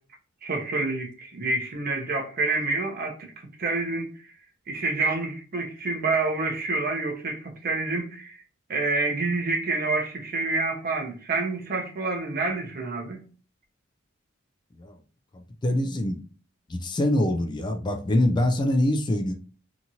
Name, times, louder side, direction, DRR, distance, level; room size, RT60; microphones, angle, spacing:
voice 1, 0.4-3.3 3.6-4.1 4.7-8.4 8.7-13.2, right 3 dB, 50° right, 0.7 m, -28 dB
voice 2, 15.6-16.2 16.7-19.3, left 1 dB, 20° left, 0.3 m, -24 dB
2.9 x 2.4 x 2.7 m
head